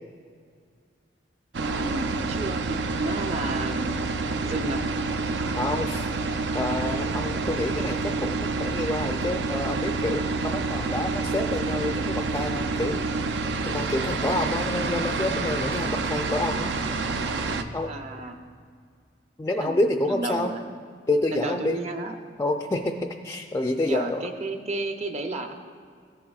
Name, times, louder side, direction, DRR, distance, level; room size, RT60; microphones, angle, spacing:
voice 1, 1.5-3.9 4.4-4.8 17.8-18.3 19.6-20.7 21.3-22.1 23.9-25.5, right 2 dB, 40° right, 5 dB, 0.7 m, -32 dB
sound 1, 1.5-17.6, right 3 dB, 75° right, 0.5 m, -28 dB
voice 2, 5.6-6.1 6.5-13.0 13.6-16.8 17.7-17.9 19.4-20.5 21.1-21.8 22.4-24.2, left 2 dB, 15° left, 3 dB, 0.3 m, -28 dB
15.0 x 8.5 x 2.4 m, 2.1 s
head